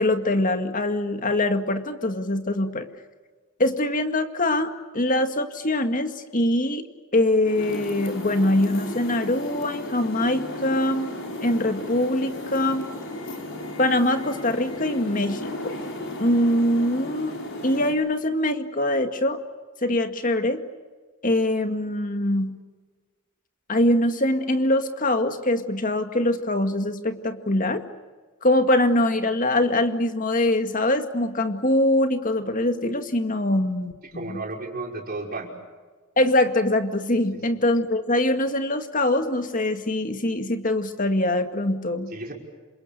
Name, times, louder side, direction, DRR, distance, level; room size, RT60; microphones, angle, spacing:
voice 1, 0.0-2.9 3.6-6.8 7.1-11.1 11.4-12.9 13.8-15.7 16.2-17.4 17.6-19.4 19.8-20.6 21.2-22.6 23.7-27.9 28.4-34.4 36.2-42.1, left 1 dB, 40° left, 7 dB, 2.1 m, -23 dB
sound 1, 7.4-17.9, left 2 dB, 60° left, 5.1 m, -34 dB
voice 2, 34.1-35.5 37.5-37.6 42.1-42.3, right 2 dB, 45° right, 1 dB, 5.6 m, -33 dB
28.5 x 27.0 x 6.8 m, 1.4 s
head